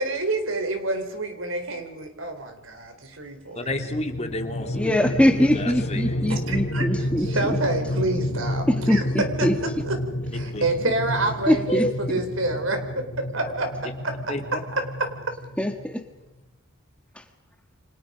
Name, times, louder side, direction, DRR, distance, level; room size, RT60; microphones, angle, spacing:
voice 1, 0.0-3.7 6.2-6.8 7.2-10.0 10.3-12.8 13.3-13.7 14.7-14.8, right 2 dB, 75° right, 6 dB, 4.2 m, -28 dB
voice 2, 3.5-4.9 5.3-6.1 10.5-10.6 11.7-11.9 14.3-14.6, equal, 35° left, 5 dB, 2.7 m, -30 dB
sound 1, 3.7-15.9, left 1 dB, 60° left, 3.7 m, -30 dB
voice 3, 4.7-7.6 8.7-9.6 11.5-11.9 15.6-16.0 17.2-17.3, left 1 dB, 5° left, 5 dB, 1.6 m, -22 dB
29.0 x 25.5 x 5.2 m, 0.94 s
head